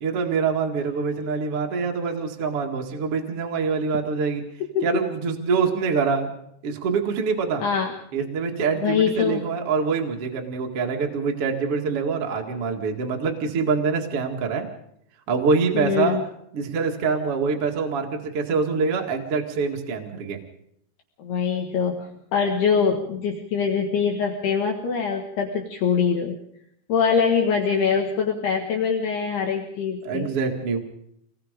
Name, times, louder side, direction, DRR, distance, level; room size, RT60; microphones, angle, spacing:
voice 1, 0.0-4.4 4.8-6.3 6.6-7.6 8.1-14.7 15.3-16.2 16.5-20.4 30.0-30.8, right 5 dB, 45° right, 2 dB, 2.0 m, -25 dB
voice 2, 7.6-7.9 8.8-9.4 15.8-16.2 21.2-26.4 26.9-30.3, left 6 dB, 65° left, 1 dB, 3.3 m, -23 dB
27.0 x 20.0 x 5.1 m, 0.73 s
omnidirectional pair, 5.4 m